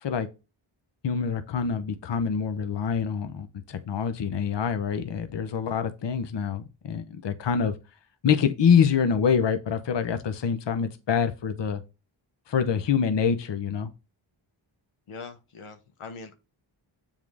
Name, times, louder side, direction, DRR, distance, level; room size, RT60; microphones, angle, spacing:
voice 1, 1.0-7.7 8.2-11.8 12.5-13.9, left 7 dB, 60° left, 0.8 m, -25 dB
voice 2, 15.1-16.3, left 4 dB, 85° left, 1.1 m, -42 dB
7.3 x 3.7 x 4.8 m
cardioid pair, 70°, 49 cm